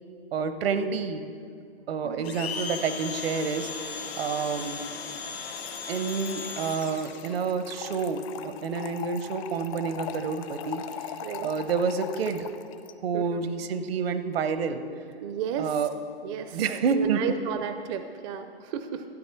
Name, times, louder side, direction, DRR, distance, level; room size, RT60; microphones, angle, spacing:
voice 1, 0.3-1.3 1.9-3.7 4.1-4.8 5.9-12.5 13.0-14.8 15.6-15.9 16.5-17.2, right 5 dB, 65° right, 10 dB, 0.9 m, -29 dB
Domestic sounds home sounds, 2.2-7.3, left 5 dB, 75° left, 1.4 m, -37 dB
Trickle dribble / Fill (with liquid), 5.6-12.9, left 8 dB, 35° left, 0.4 m, -40 dB
voice 2, 13.1-13.4 15.2-15.8 16.2-16.6 16.9-19.1, right 8 dB, 30° right, 9 dB, 0.4 m, -33 dB
13.0 x 8.5 x 4.4 m, 2.4 s
hypercardioid pair, 125°, 32 cm